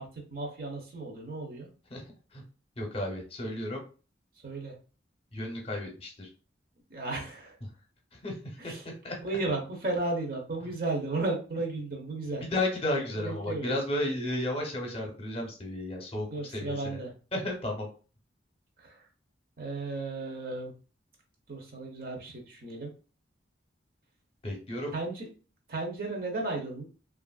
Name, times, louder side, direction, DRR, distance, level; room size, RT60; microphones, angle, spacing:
voice 1, 0.0-1.7 4.4-4.7 6.9-7.6 8.6-8.9 9.2-12.4 13.1-13.8 16.3-17.1 18.8-19.1 19.6-20.7 21.5-22.9 24.9-25.3 25.7-26.8, right 2 dB, 50° right, 0 dB, 0.7 m, -34 dB
voice 2, 2.8-3.8 5.3-6.3 8.1-9.2 12.5-16.3 16.5-17.0 17.3-17.9 24.4-24.9, left 1 dB, 30° left, 1 dB, 0.7 m, -33 dB
3.0 x 2.4 x 2.3 m, 0.36 s
head